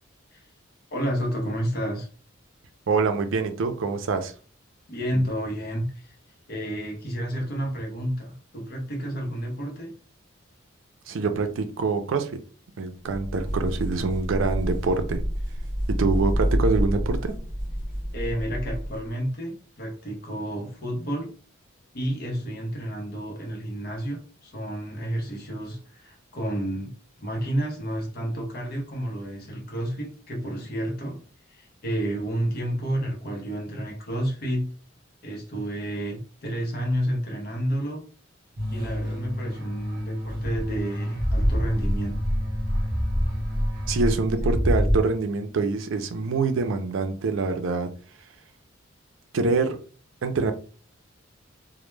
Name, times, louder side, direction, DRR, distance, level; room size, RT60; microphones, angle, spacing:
voice 1, 0.9-2.1 4.9-6.2 6.5-9.9 18.1-21.3 21.9-31.2 31.5-34.7 35.2-38.0 38.7-42.2, equal, 50° left, 0.7 m, -30 dB
voice 2, 2.9-4.3 5.1-5.2 11.1-12.4 12.8-15.2 15.9-17.3 43.9-47.9 49.3-49.8 50.2-50.5, right 4 dB, 80° right, 0.4 m, -25 dB
sound 1, 13.1-19.1, equal, 15° right, 0.7 m, -28 dB
sound 2, 38.6-44.7, equal, 50° right, 0.8 m, -33 dB
sound 3, 40.5-45.0, equal, 10° left, 0.3 m, -26 dB
2.1 x 2.1 x 3.1 m
head